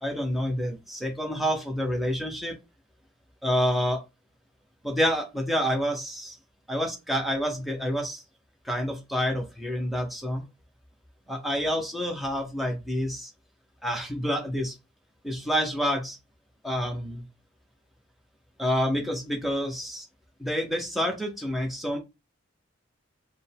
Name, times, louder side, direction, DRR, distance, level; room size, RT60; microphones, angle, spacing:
voice 1, 0.0-2.6 3.4-4.0 4.8-6.3 6.7-8.2 8.6-10.4 11.3-13.3 13.8-14.7 15.2-16.2 16.6-17.2 18.6-20.1 20.4-22.0, equal, ahead, 2 dB, 0.9 m, -28 dB
5.0 x 2.2 x 3.5 m, 0.25 s
head